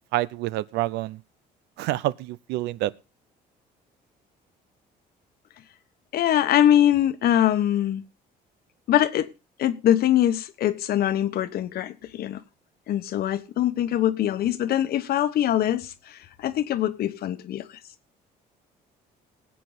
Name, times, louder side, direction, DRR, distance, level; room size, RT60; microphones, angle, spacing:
voice 1, 0.1-1.2 1.8-2.9, right 16 dB, 90° right, 0.6 m, -27 dB
voice 2, 6.1-8.0 8.9-9.3 9.6-12.4 12.9-17.7, left 11 dB, 65° left, 1.2 m, -23 dB
19.5 x 8.5 x 4.0 m
cardioid pair, 110°, 17 cm